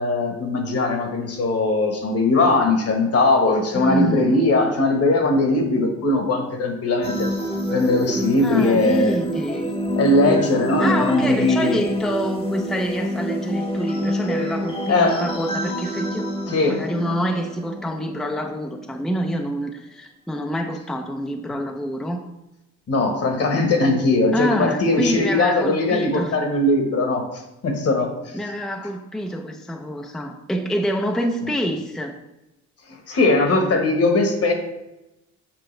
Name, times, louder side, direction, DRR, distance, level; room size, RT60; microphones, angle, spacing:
voice 1, 0.0-7.3 7.7-9.2 10.0-11.8 14.9-15.2 16.5-16.8 22.9-27.2 27.6-28.4 31.4-31.5 33.1-34.5, left 2 dB, 50° left, 4 dB, 1.4 m, -20 dB
voice 2, 3.7-4.4 8.4-9.7 10.8-22.2 24.3-26.4 28.3-32.1, equal, ahead, 3 dB, 0.5 m, -27 dB
sound 1, 7.0-18.6, equal, 20° left, 1.0 m, -27 dB
7.6 x 4.7 x 3.3 m, 0.95 s
cardioid pair, 90°, 30 cm